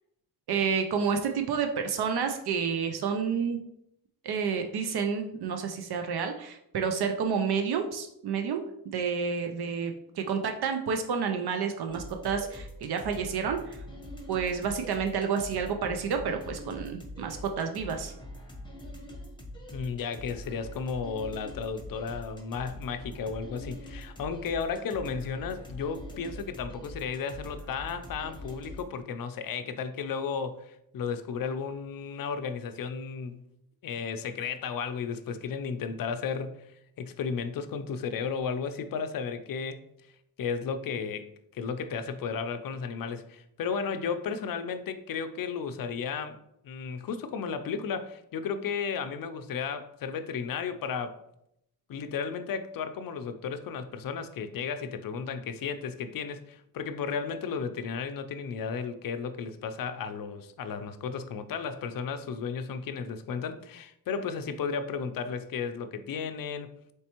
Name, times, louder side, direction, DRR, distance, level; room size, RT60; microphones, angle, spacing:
voice 1, 0.5-3.6 4.2-13.8 14.3-18.1, right 6 dB, 75° right, 0.5 m, -30 dB
sound 1, 11.9-28.8, left 1 dB, 10° left, 0.8 m, -44 dB
voice 2, 19.7-33.4 33.8-36.7 37.0-39.9 40.4-46.4 46.6-51.2 51.9-66.8, left 6 dB, 60° left, 0.5 m, -34 dB
4.2 x 3.3 x 2.9 m
cardioid pair, 75°, 39 cm